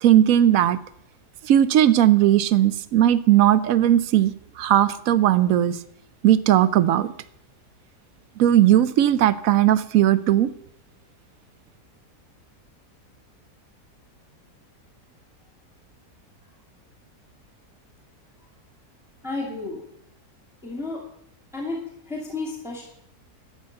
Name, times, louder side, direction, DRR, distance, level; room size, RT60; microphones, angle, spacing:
voice 1, 0.0-0.8 1.4-5.8 6.2-7.1 8.4-10.5, right 12 dB, 70° right, 16 dB, 0.9 m, -18 dB
voice 2, 19.2-19.8 20.6-21.0 21.5-22.8, left 3 dB, ahead, -3 dB, 2.3 m, -32 dB
12.0 x 7.8 x 6.5 m, 0.73 s
omnidirectional pair, 1.7 m